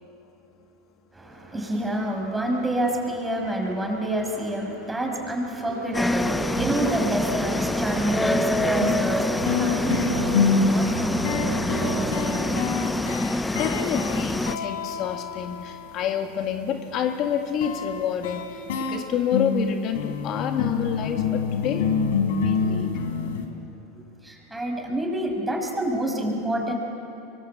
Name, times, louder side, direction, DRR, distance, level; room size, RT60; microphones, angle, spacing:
voice 1, 1.1-12.5 24.2-26.8, right 1 dB, 10° right, 1 dB, 6.0 m, -28 dB
sound 1, 5.7-12.7, right 14 dB, 65° right, 0.9 m, -35 dB
sound 2, 5.9-14.6, left 2 dB, 10° left, 0.8 m, -26 dB
sound 3, 8.4-8.5 8.8-16.1 17.6-23.5, left 5 dB, 75° left, 3.4 m, -27 dB
voice 2, 13.6-21.9 22.3-22.9, left 8 dB, 45° left, 5 dB, 1.7 m, -28 dB
24.0 x 24.0 x 8.4 m, 2.9 s
hypercardioid pair, 95°, 0 cm